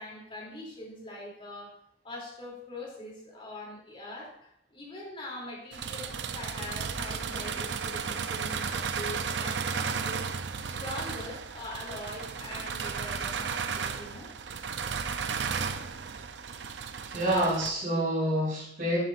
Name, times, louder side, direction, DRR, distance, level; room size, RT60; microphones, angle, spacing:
voice 1, 0.0-1.8 2.0-10.3 10.6-14.3, left 1 dB, 30° left, -3 dB, 3.1 m, -42 dB
sound 1, 5.7-17.7, right 6 dB, 75° right, 0.6 m, -34 dB
voice 2, 17.0-19.0, right 1 dB, 50° right, -10 dB, 3.9 m, -27 dB
11.0 x 10.5 x 2.6 m, 0.70 s
head